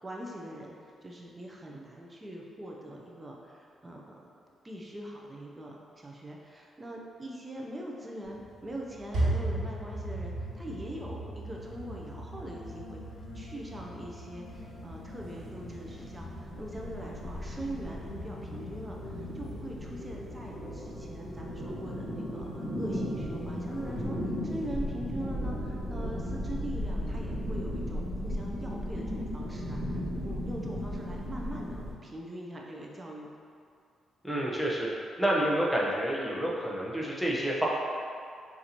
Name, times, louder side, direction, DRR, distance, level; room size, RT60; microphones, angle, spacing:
voice 1, 0.0-0.7 1.0-4.2 4.6-13.0 13.3-33.3, right 1 dB, 25° right, -2 dB, 0.7 m, -42 dB
sound 1, 8.2-19.6, right 1 dB, 70° right, 1.5 m, -38 dB
sound 2, 8.9-24.0, left 2 dB, 85° left, 0.7 m, -46 dB
sound 3, 14.4-31.9, equal, 40° right, 1.4 m, -36 dB
voice 2, 34.2-34.9 35.2-37.7, right 1 dB, 5° left, -4 dB, 1.0 m, -28 dB
6.5 x 2.7 x 2.9 m, 2.3 s
supercardioid pair, 60°, 0 cm